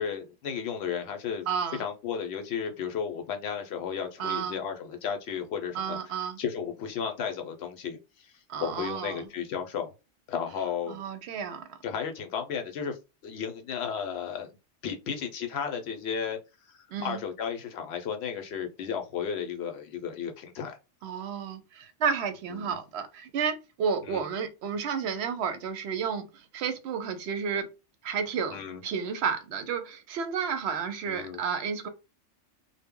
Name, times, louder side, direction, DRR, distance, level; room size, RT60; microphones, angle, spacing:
voice 1, 0.0-1.5 1.8-8.3 8.6-9.9 10.3-11.0 11.8-13.0 13.2-14.6 14.8-16.4 16.7-20.8 22.5-22.8 24.1-24.2 28.5-28.8 31.1-31.4, left 7 dB, 65° left, 0.8 m, -34 dB
voice 2, 1.5-1.8 4.2-4.6 5.7-6.4 8.5-9.3 10.9-11.8 16.9-17.2 21.0-27.7 28.0-31.9, right 6 dB, 70° right, 0.8 m, -31 dB
2.1 x 2.0 x 3.5 m
omnidirectional pair, 1.2 m